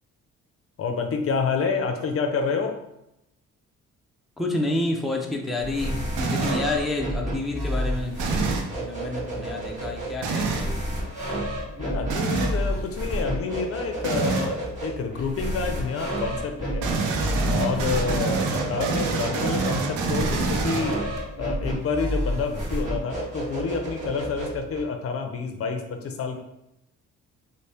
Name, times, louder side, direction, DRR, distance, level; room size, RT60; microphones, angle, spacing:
voice 1, 0.8-2.7 11.8-16.9 17.5-21.0 21.4-26.4, left 5 dB, 50° left, 5 dB, 0.5 m, -28 dB
voice 2, 4.4-8.2 8.8-10.9, left 2 dB, ahead, 0 dB, 0.4 m, -29 dB
sound 1, 5.6-24.8, equal, 25° right, 1.4 m, -31 dB
sound 2, 6.2-6.7 8.2-8.7 10.2-10.7 12.1-12.6 14.0-14.5 16.8-21.2, right 4 dB, 85° right, 0.6 m, -26 dB
4.0 x 2.1 x 3.3 m, 0.85 s
cardioid pair, 90°, 30 cm